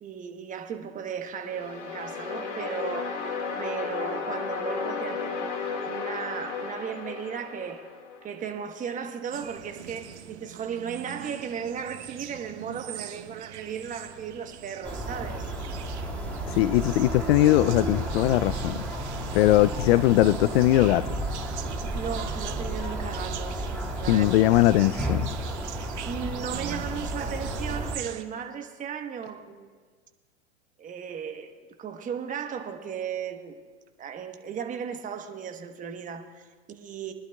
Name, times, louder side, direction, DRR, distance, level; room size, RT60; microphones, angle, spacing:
voice 1, 0.0-3.2 3.6-7.9 8.2-15.5 21.9-23.7 24.0-24.3 26.0-29.7 30.8-33.6 34.0-37.1, right 7 dB, 20° right, 1.2 m, -36 dB
sound 1, 1.4-8.4, left 5 dB, 85° left, 2.0 m, -34 dB
sound 2, 9.3-28.2, right 11 dB, 70° right, 1.0 m, -42 dB
sound 3, 14.8-28.0, right 1 dB, 5° left, 2.2 m, -33 dB
voice 2, 16.5-18.8 19.3-21.2 24.1-25.3, left 15 dB, 60° left, 0.5 m, -21 dB
23.5 x 11.5 x 2.3 m
hypercardioid pair, 115°, 35 cm